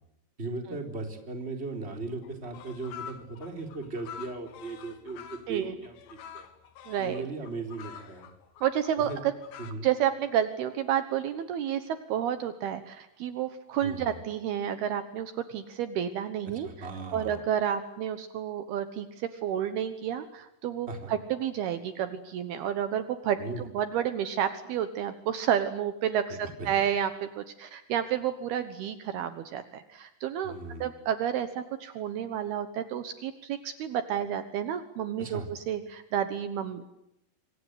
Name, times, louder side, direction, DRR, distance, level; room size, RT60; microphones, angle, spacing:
voice 1, 0.4-6.5 7.0-8.3 9.1-9.2 9.6-9.9 13.8-14.2 16.5-17.4 20.9-21.1 23.4-23.7 26.3-26.7 30.4-30.9 35.2-35.5, right 3 dB, 15° right, 4 dB, 3.7 m, -38 dB
sound 1, 2.2-9.7, left 8 dB, 90° left, 4.2 m, -47 dB
voice 2, 6.9-7.2 8.6-9.3 9.8-16.7 17.1-36.9, right 9 dB, 70° right, 10 dB, 3.0 m, -30 dB
26.0 x 25.5 x 8.1 m, 0.83 s
omnidirectional pair, 5.0 m